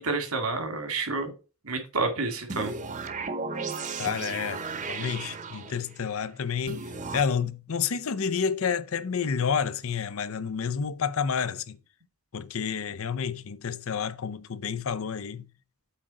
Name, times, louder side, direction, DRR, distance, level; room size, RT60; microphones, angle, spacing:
voice 1, 0.0-1.3 1.6-2.7, right 3 dB, 85° right, 2.0 m, -29 dB
sound 1, 2.5-6.0 6.7-7.2, right 4 dB, 35° right, 0.8 m, -35 dB
voice 2, 4.0-11.8 12.3-15.5, left 6 dB, 70° left, 0.6 m, -30 dB
8.3 x 3.7 x 5.2 m
head